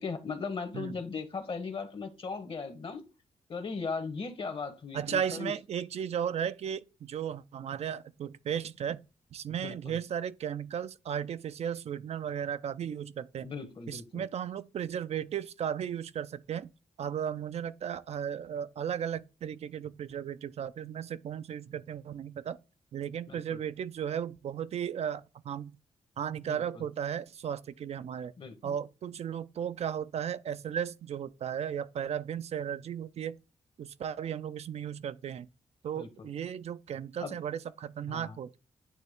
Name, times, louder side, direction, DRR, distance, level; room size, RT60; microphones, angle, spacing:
voice 1, 0.0-3.0 3.5-5.5 9.6-10.0 13.4-14.2 23.3-23.6 26.5-26.8 28.4-28.8 35.9-36.3 37.2-37.4 38.1-38.4, left 4 dB, 50° left, 1.3 m, -38 dB
voice 2, 4.9-9.0 9.3-13.5 13.9-16.7 17.0-22.6 22.9-25.8 26.2-28.3 28.6-33.4 33.8-35.5 35.8-38.6, right 8 dB, 65° right, 0.4 m, -35 dB
9.2 x 3.1 x 3.6 m
cardioid pair, 75°, 12 cm